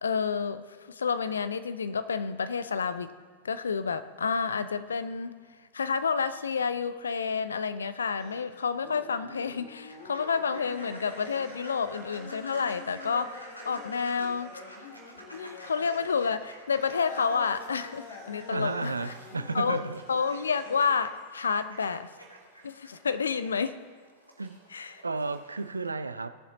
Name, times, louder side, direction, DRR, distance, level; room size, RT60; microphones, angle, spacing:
voice 1, 0.0-3.1 3.4-5.4 5.7-14.5 15.3-19.1 19.5-19.8 20.1-22.1 22.6-23.8 24.7-25.0, left 5 dB, 70° left, 0.6 m, -30 dB
sound 1, 8.2-8.4 8.8-16.3 16.7-20.9, left 4 dB, 55° left, 1.8 m, -46 dB
sound 2, 9.9-25.9, right 1 dB, 90° left, 1.8 m, -50 dB
voice 2, 18.5-20.0 24.4-24.6 25.0-26.4, right 3 dB, 80° right, 0.5 m, -32 dB
18.5 x 7.2 x 3.9 m
figure-of-eight pair, 90°, 0 cm